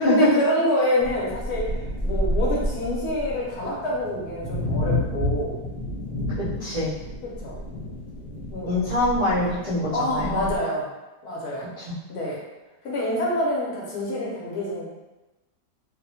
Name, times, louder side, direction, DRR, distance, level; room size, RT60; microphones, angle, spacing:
voice 1, 0.0-5.6 7.2-7.6 8.5-8.8 9.4-9.5 9.9-10.9 11.2-11.7 12.1-12.4 12.8-14.9, left 1 dB, 70° left, -5 dB, 1.1 m, -26 dB
sound 1, 1.0-10.6, left 1 dB, 35° left, 1.1 m, -30 dB
voice 2, 6.3-6.9 8.6-10.4 11.8-11.9, left 1 dB, 45° right, -12 dB, 0.4 m, -24 dB
2.9 x 2.1 x 2.7 m, 1.1 s
omnidirectional pair, 1.8 m